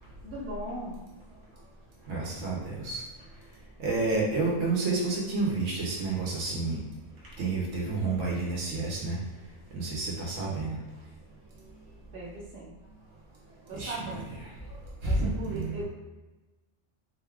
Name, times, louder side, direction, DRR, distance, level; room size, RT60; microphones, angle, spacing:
voice 1, 0.2-0.9 4.4-4.5 12.1-12.7 13.7-14.3 15.0-15.8, right 1 dB, 50° right, -4 dB, 1.1 m, -38 dB
voice 2, 2.1-3.0 3.8-6.8 7.4-9.2 9.7-10.8 13.7-14.0 15.0-15.8, right 3 dB, 90° right, -4 dB, 1.2 m, -29 dB
3.9 x 2.3 x 3.4 m, 1.1 s
omnidirectional pair, 1.3 m